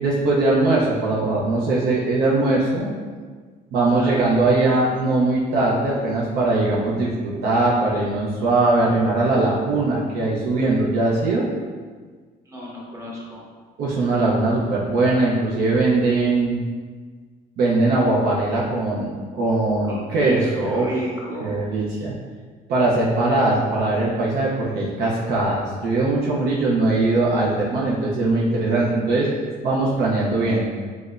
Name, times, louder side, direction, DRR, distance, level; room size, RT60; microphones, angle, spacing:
voice 1, 0.0-2.9 3.7-11.4 13.8-16.6 17.6-20.9 21.4-22.1 22.7-29.3 29.6-30.7, right 2 dB, 70° right, -5 dB, 0.6 m, -20 dB
voice 2, 3.9-4.2 12.5-13.4 19.9-21.6, right 1 dB, 15° right, -5 dB, 0.9 m, -31 dB
4.7 x 2.1 x 2.4 m, 1.5 s
cardioid pair, 110°, 17 cm